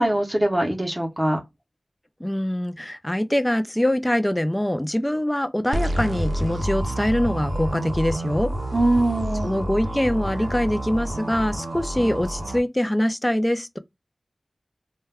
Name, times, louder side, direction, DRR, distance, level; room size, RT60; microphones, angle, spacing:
voice 1, 0.0-1.4 8.7-9.5, right 1 dB, 20° right, 0.6 m, -22 dB
voice 2, 2.2-8.5 9.4-13.8, left 1 dB, 15° left, 0.3 m, -23 dB
sound 1, 5.7-12.6, right 1 dB, 75° right, 0.5 m, -28 dB
2.2 x 2.2 x 3.3 m
wide cardioid pair, 70°, 0 cm